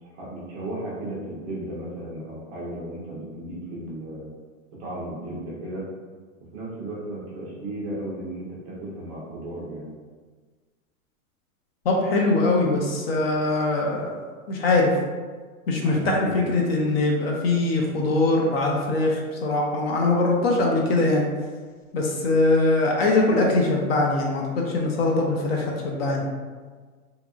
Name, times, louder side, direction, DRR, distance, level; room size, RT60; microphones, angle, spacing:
voice 1, 0.0-4.3 4.8-5.8 6.5-9.9 15.8-16.3, right 1 dB, 25° right, -6 dB, 0.5 m, -35 dB
voice 2, 11.8-14.9 15.7-21.2 21.9-26.2, left 2 dB, 45° left, -1 dB, 0.4 m, -22 dB
2.8 x 2.5 x 2.3 m, 1.5 s
hypercardioid pair, 145°, 42 cm